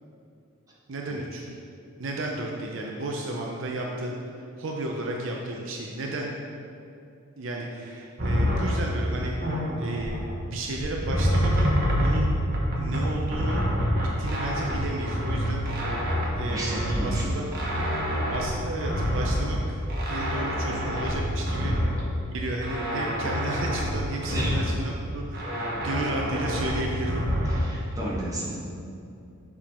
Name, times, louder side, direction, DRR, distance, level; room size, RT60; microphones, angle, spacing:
voice 1, 0.9-1.5 2.0-6.3 7.4-10.2 10.5-11.7 12.0-12.3 12.8-13.6 14.0-15.9 16.4-17.5 18.3-21.8 22.3-27.2, right 2 dB, 65° right, 0 dB, 0.6 m, -33 dB
sound 1, 8.2-10.4 10.7-22.2 22.6-24.9 25.3-27.6, equal, 45° right, 1.1 m, -27 dB
voice 2, 16.4-17.2 24.2-24.6 27.4-28.5, right 1 dB, 15° right, -7 dB, 1.2 m, -33 dB
7.2 x 3.7 x 4.3 m, 2.5 s
head